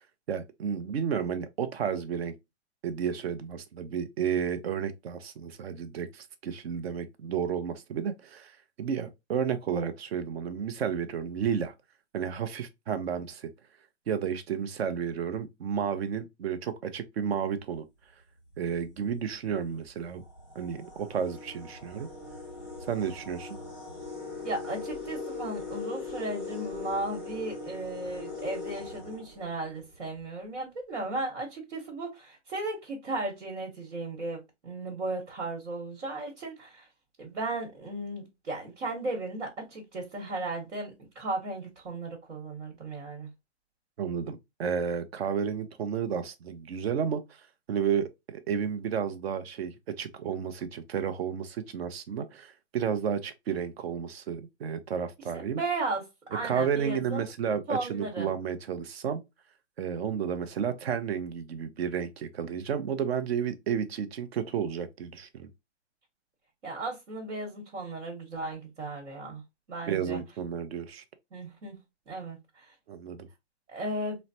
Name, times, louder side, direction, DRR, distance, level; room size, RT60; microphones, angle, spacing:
voice 1, 0.3-2.3 2.8-8.5 8.8-11.7 12.1-13.5 14.1-17.8 18.6-20.2 20.6-22.1 22.9-23.6 44.0-47.2 47.7-55.6 56.4-59.2 59.8-65.5 69.9-71.0 72.9-73.3, right 7 dB, 60° right, 0.6 m, -32 dB
sound 1, 18.5-18.8 19.6-19.7 20.2-29.9, left 3 dB, ahead, 0.6 m, -40 dB
voice 2, 24.4-36.9 37.2-43.3 55.3-56.0 56.3-57.2 57.7-58.3 66.6-69.4 69.7-70.2 71.3-71.8 72.1-72.7 73.7-74.2, right 2 dB, 80° right, 1.3 m, -35 dB
3.1 x 2.1 x 2.6 m
hypercardioid pair, 160°, 35 cm